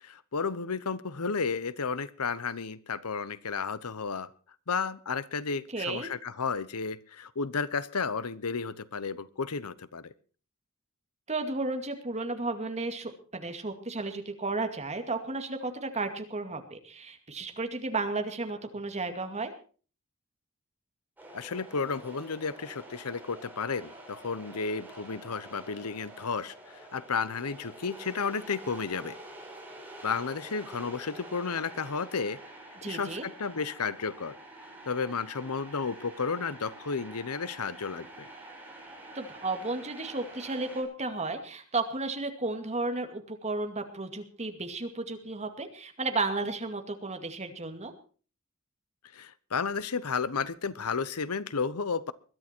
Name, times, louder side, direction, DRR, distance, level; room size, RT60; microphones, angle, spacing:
voice 1, 0.0-4.3 4.7-10.1 21.3-29.2 30.0-32.4 32.8-34.4 34.8-38.3 49.1-52.1, left 5 dB, 85° left, 17 dB, 0.9 m, -32 dB
voice 2, 5.7-6.1 11.3-19.5 32.8-33.3 39.1-47.9, right 3 dB, 30° right, 6 dB, 2.3 m, -33 dB
sound 1, 21.2-40.8, right 1 dB, 10° right, 5.3 m, -47 dB
21.5 x 12.0 x 4.5 m, 0.40 s
head